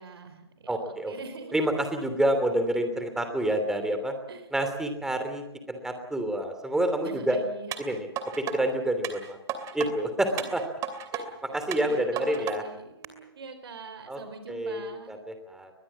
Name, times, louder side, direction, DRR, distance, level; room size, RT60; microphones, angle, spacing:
voice 1, 0.0-1.5 4.3-4.5 7.0-7.8 10.3-10.5 11.1-15.1, right 4 dB, 70° right, 9 dB, 3.9 m, -44 dB
voice 2, 0.7-1.1 1.5-4.1 4.5-7.4 7.8-8.1 8.4-9.4 9.7-10.6 11.5-12.6 14.1-14.2 14.5-15.7, right 1 dB, 5° right, 7 dB, 3.1 m, -28 dB
sound 1, 7.7-8.6 9.0-9.9 10.4-11.2 11.7-12.6 13.0-13.1, right 9 dB, 25° right, 2.8 m, -34 dB
22.5 x 21.5 x 7.4 m, 0.88 s
hypercardioid pair, 135°, 13 cm